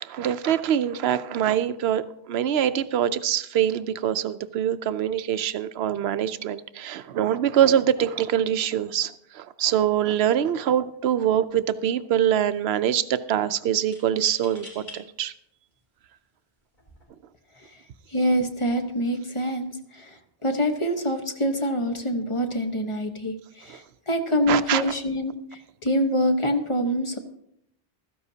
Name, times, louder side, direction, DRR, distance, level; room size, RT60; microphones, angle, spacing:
voice 1, 0.0-15.3 23.7-23.8 24.5-24.8, right 10 dB, 75° right, 13 dB, 0.8 m, -24 dB
sound 1, 10.7-11.0 11.3-11.9 13.9-15.0 15.7-15.8 16.7-17.0, left 2 dB, 45° left, 3.2 m, -45 dB
voice 2, 18.1-20.2 20.4-25.3 25.8-27.2, equal, 30° left, 5 dB, 1.1 m, -25 dB
15.5 x 13.5 x 2.8 m, 0.76 s
omnidirectional pair, 1.1 m